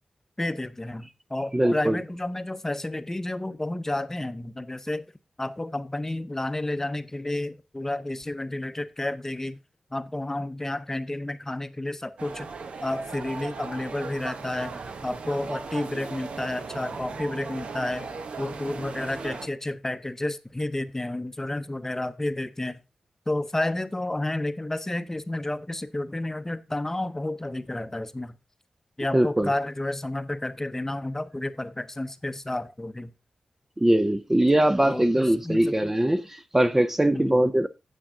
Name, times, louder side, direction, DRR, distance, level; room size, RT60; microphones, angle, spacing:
voice 1, 0.4-5.1 5.4-9.6 9.9-12.5 12.8-22.8 23.3-28.4 29.0-33.1 34.9-35.7 37.1-37.5, left 1 dB, 20° left, 0.7 m, -31 dB
voice 2, 1.5-2.0 29.1-29.5 33.8-37.7, right 1 dB, 15° right, 0.5 m, -21 dB
sound 1, 12.2-19.5, right 4 dB, 75° right, 0.9 m, -37 dB
8.7 x 7.4 x 3.7 m
cardioid pair, 60°, 2 cm